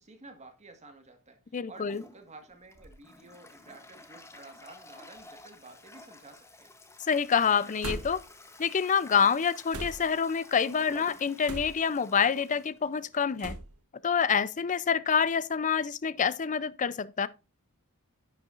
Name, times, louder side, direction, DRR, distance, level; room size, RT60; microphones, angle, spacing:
voice 1, 0.0-1.4 1.7-6.7, right 3 dB, 30° right, 1.7 m, -52 dB
voice 2, 1.5-2.0 7.0-8.2 8.6-13.5 14.0-17.3, left 6 dB, 35° left, 0.5 m, -27 dB
Toilet flush, 1.7-13.5, left 2 dB, 10° left, 1.0 m, -51 dB
sound 1, 2.5-3.0 3.8-3.9 5.2-5.4 5.7-6.2 7.8-8.4 9.7-10.2 11.4-12.0 13.4-13.8, right 2 dB, 75° right, 1.2 m, -40 dB
10.5 x 8.0 x 2.5 m
head